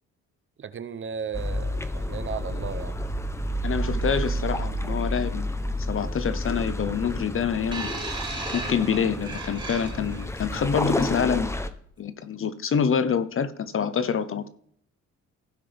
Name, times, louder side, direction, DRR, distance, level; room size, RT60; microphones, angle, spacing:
voice 1, 0.6-3.0, right 7 dB, 40° right, 0.7 m, -35 dB
sound 1, 1.3-11.7, equal, 10° left, 0.8 m, -30 dB
voice 2, 3.6-5.4 5.8-7.9 8.5-11.5 12.0-14.5, left 7 dB, 45° left, 0.9 m, -26 dB
sound 2, 7.7-10.3 11.2-11.3, right 3 dB, 15° right, 3.7 m, -35 dB
16.0 x 5.6 x 3.5 m
cardioid pair, 90°, 30 cm